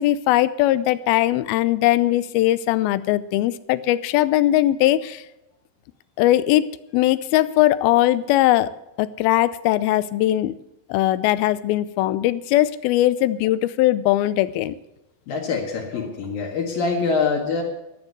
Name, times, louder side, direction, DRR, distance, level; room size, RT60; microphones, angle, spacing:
voice 1, 0.0-5.2 6.2-8.7 9.0-10.5 10.9-14.8, left 15 dB, 90° left, 16 dB, 2.5 m, -20 dB
voice 2, 15.3-17.6, left 4 dB, 75° left, 0 dB, 3.5 m, -24 dB
14.0 x 10.5 x 6.8 m, 0.94 s
omnidirectional pair, 4.2 m